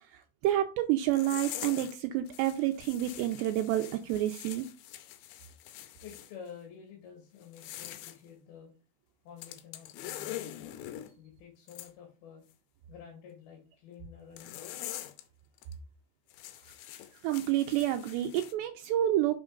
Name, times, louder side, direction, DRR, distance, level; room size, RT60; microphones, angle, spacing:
voice 1, 0.1-4.7 17.2-19.4, right 13 dB, 90° right, 6 dB, 2.4 m, -29 dB
sound 1, 1.1-2.0 2.3-6.3 7.4-8.2 9.4-11.1 11.7-11.9 14.4-15.2 15.6-15.7 16.3-18.5, left 13 dB, 85° left, 2.7 m, -44 dB
voice 2, 6.0-8.7 9.2-10.9 11.2-12.4 12.9-14.9, left 7 dB, 65° left, 1 dB, 3.1 m, -50 dB
6.4 x 6.1 x 3.8 m, 0.33 s
omnidirectional pair, 5.5 m